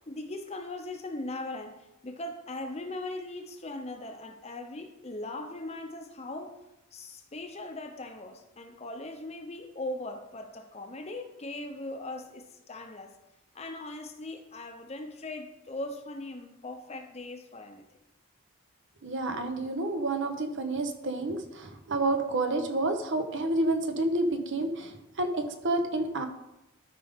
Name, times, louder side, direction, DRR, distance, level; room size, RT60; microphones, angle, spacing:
voice 1, 0.0-6.5 6.9-13.1 13.5-17.8, left 2 dB, 30° left, 6 dB, 0.8 m, -39 dB
voice 2, 19.0-26.3, right 2 dB, 60° right, 7 dB, 1.0 m, -29 dB
12.5 x 5.2 x 3.7 m, 0.91 s
head